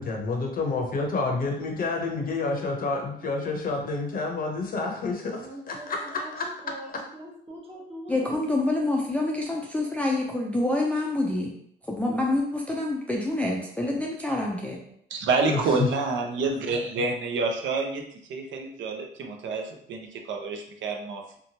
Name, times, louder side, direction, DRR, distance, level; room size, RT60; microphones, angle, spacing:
voice 1, 0.0-6.5 15.5-15.9, left 3 dB, 45° left, 1 dB, 0.6 m, -29 dB
voice 2, 5.4-8.8, right 1 dB, 30° right, -3 dB, 0.9 m, -43 dB
voice 3, 8.1-11.5 11.8-14.8, left 2 dB, 5° left, -2 dB, 0.4 m, -27 dB
voice 4, 15.1-18.0 18.3-21.4, right 3 dB, 70° right, 3 dB, 0.5 m, -28 dB
2.8 x 2.2 x 2.7 m, 0.68 s
cardioid pair, 90°, 20 cm